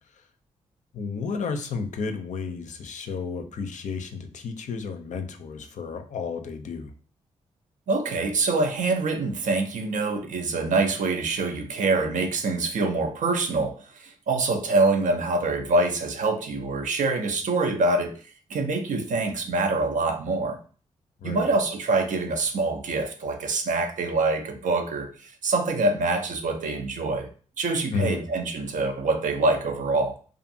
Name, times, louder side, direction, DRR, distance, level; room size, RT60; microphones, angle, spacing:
voice 1, 0.9-6.9 21.2-21.5 27.9-28.3, left 5 dB, 60° left, 0.5 m, -32 dB
voice 2, 7.9-18.1 18.5-20.6 21.2-27.3 27.6-30.2, right 3 dB, 60° right, 0.5 m, -25 dB
2.5 x 2.4 x 2.7 m
hypercardioid pair, 40°, 15 cm